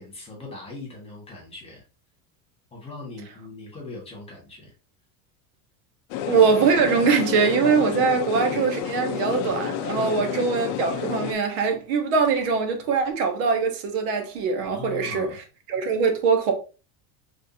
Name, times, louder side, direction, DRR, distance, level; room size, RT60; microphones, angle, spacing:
voice 1, 0.0-1.8 2.7-4.7 9.9-10.3 14.7-15.4, left 3 dB, 10° left, 1.5 m, -40 dB
sound 1, 6.1-11.3, left 9 dB, 45° left, 0.5 m, -30 dB
voice 2, 6.3-15.3 15.7-16.5, right 5 dB, 70° right, 1.2 m, -22 dB
3.7 x 3.3 x 2.7 m
cardioid pair, 150°, 49 cm